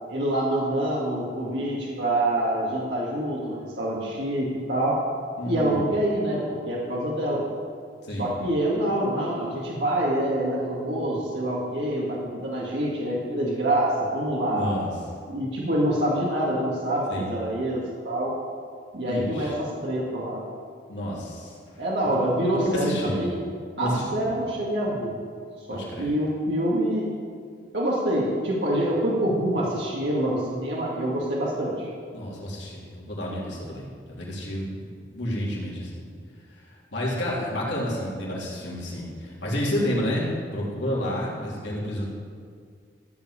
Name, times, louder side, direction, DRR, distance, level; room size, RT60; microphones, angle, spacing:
voice 1, 0.1-5.0 5.5-7.5 8.2-14.7 15.3-18.3 18.9-19.5 19.8-20.4 21.8-23.3 23.8-25.2 25.7-27.1 27.7-31.9, right 1 dB, 85° right, -5 dB, 2.1 m, -26 dB
voice 2, 5.4-5.8 8.0-8.3 14.5-14.9 17.1-17.3 19.0-19.5 20.9-21.8 22.5-23.2 23.8-24.2 25.7-26.1 32.1-36.0 36.5-42.1, equal, 80° left, -5 dB, 3.3 m, -30 dB
14.5 x 5.5 x 8.5 m, 2.1 s
head